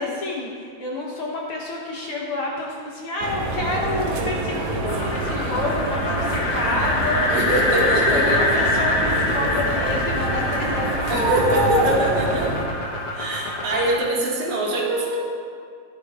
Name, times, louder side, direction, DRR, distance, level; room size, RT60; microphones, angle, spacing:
voice 1, 0.0-11.7, left 2 dB, 60° left, -3 dB, 1.6 m, -29 dB
sound 1, 3.2-12.7, right 2 dB, 65° right, 2.1 m, -26 dB
sound 2, 4.9-14.0, left 2 dB, 80° left, 2.5 m, -25 dB
voice 2, 7.3-8.4 11.1-12.5 13.1-15.2, right 1 dB, 85° right, -5 dB, 3.3 m, -23 dB
14.5 x 11.0 x 2.4 m, 2.2 s
omnidirectional pair, 3.4 m